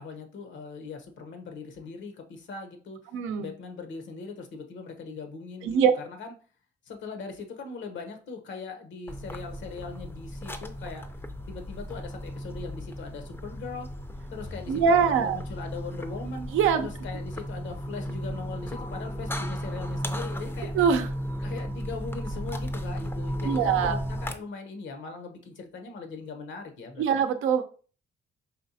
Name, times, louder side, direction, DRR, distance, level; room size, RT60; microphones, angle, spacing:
voice 1, 0.0-3.0 3.4-5.8 6.0-6.3 6.8-11.1 11.5-13.9 14.3-16.5 16.8-20.7 21.4-27.2, left 4 dB, 70° left, 6 dB, 0.9 m, -40 dB
voice 2, 3.1-3.5 5.6-5.9 14.7-15.4 16.5-16.9 20.7-21.1 23.4-24.0 27.0-27.6, right 7 dB, 85° right, 8 dB, 0.6 m, -23 dB
sound 1, 9.1-24.3, equal, 10° left, 0.5 m, -35 dB
4.3 x 3.2 x 2.7 m, 0.40 s
cardioid pair, 90°, 20 cm